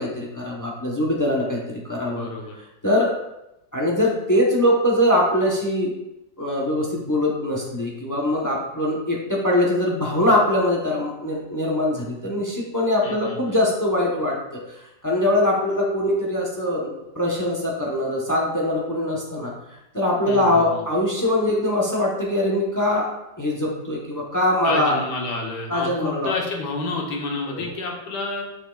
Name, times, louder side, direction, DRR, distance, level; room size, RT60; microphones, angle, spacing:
voice 1, 0.0-2.3 2.8-3.1 3.7-5.9 6.4-14.4 14.7-14.8 15.0-19.5 19.9-23.1 23.4-25.0 25.7-26.3 27.5-27.7, left 1 dB, 20° left, -2 dB, 0.6 m, -22 dB
voice 2, 2.1-2.6 13.0-13.6 20.3-20.8 24.6-28.4, left 2 dB, 70° left, 0 dB, 1.6 m, -29 dB
7.0 x 6.0 x 2.4 m, 0.89 s
omnidirectional pair, 1.9 m